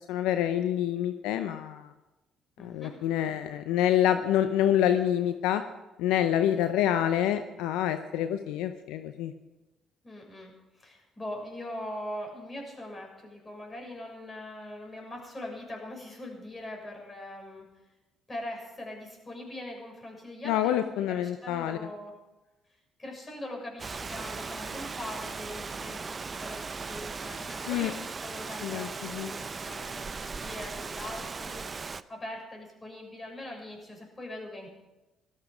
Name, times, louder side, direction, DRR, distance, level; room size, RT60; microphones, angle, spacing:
voice 1, 0.1-1.9 2.6-5.6 6.0-9.3 20.5-21.9 27.7-27.9 28.6-29.3, left 11 dB, 75° left, 9 dB, 0.6 m, -27 dB
voice 2, 2.6-3.0 6.4-6.9 10.0-17.7 18.3-22.2 23.0-31.7 32.1-34.7, left 1 dB, 25° left, 0 dB, 6.6 m, -42 dB
Rain, 23.8-32.0, right 4 dB, 35° right, 0.6 m, -38 dB
18.0 x 13.5 x 5.1 m, 1.1 s
hypercardioid pair, 55°, 0 cm